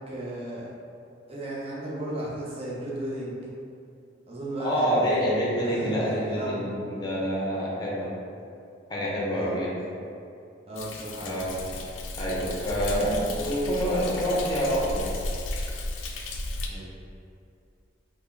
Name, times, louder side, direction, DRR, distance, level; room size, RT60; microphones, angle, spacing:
voice 1, 0.1-0.7 1.3-3.4 4.3-5.1 5.4-6.7 9.3-10.0 10.7-11.4 16.7-16.9, right 1 dB, 30° right, -6 dB, 0.7 m, -35 dB
voice 2, 4.6-8.1 8.9-9.7 11.2-11.5 12.2-15.1, equal, 20° left, -5 dB, 0.7 m, -27 dB
Thunder, 10.8-16.7, left 2 dB, 85° left, 0.4 m, -34 dB
3.5 x 2.1 x 3.8 m, 2.6 s
head